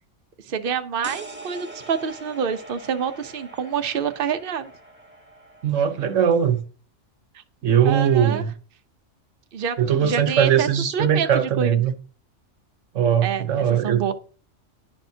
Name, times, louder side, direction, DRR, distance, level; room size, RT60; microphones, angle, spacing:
voice 1, 0.5-4.7 7.8-8.4 9.5-9.8 10.0-10.7 10.9-11.8 13.2-14.1, right 7 dB, 50° right, 1.0 m, -27 dB
sound 1, 1.0-6.6, right 2 dB, 10° right, 1.9 m, -43 dB
voice 2, 5.6-6.6 7.6-8.5 9.8-11.9 12.9-14.1, right 8 dB, 85° right, 1.3 m, -20 dB
11.0 x 10.5 x 2.8 m
omnidirectional pair, 1.3 m